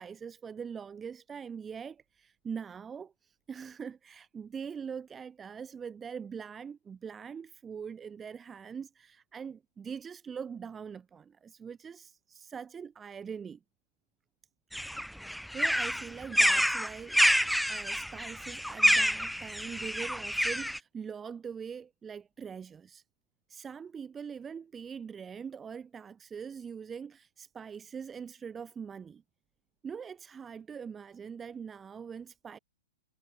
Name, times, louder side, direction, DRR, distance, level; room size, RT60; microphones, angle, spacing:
voice 1, 0.0-13.6 15.5-17.2 17.7-23.0 23.5-29.2 29.8-32.6, right 6 dB, 15° right, 5.0 m, -42 dB
sound 1, 14.7-20.8, equal, ahead, 2.0 m, -27 dB
figure-of-eight pair, 110°, 0 cm